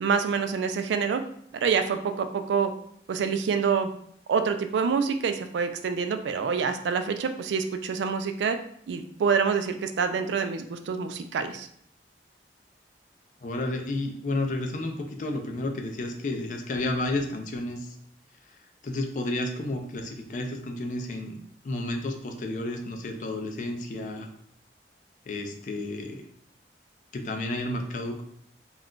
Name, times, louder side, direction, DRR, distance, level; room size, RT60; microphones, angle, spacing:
voice 1, 0.0-1.2 1.6-2.7 3.1-3.9 4.3-8.6 8.9-11.7, right 6 dB, 85° right, 8 dB, 0.3 m, -26 dB
voice 2, 13.4-18.0 18.8-21.4 21.6-24.3 25.3-26.2 27.1-28.2, left 2 dB, 45° left, 4 dB, 0.4 m, -31 dB
2.4 x 2.1 x 3.7 m, 0.67 s
head